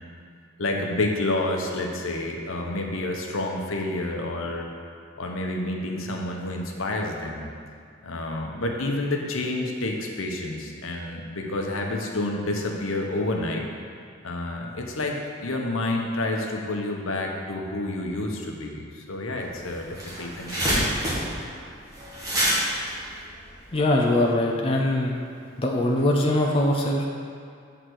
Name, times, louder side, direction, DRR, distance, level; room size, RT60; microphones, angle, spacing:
voice 1, 0.6-4.7 5.2-7.5 8.0-13.7 14.2-19.9 20.2-20.9, left 2 dB, 80° left, 1 dB, 0.9 m, -29 dB
sound 1, 19.4-19.5 19.8-24.0, equal, 15° right, 1.7 m, -27 dB
voice 2, 23.7-25.1 25.6-27.0, left 1 dB, 25° left, -1 dB, 0.6 m, -22 dB
7.8 x 4.0 x 6.3 m, 2.3 s
head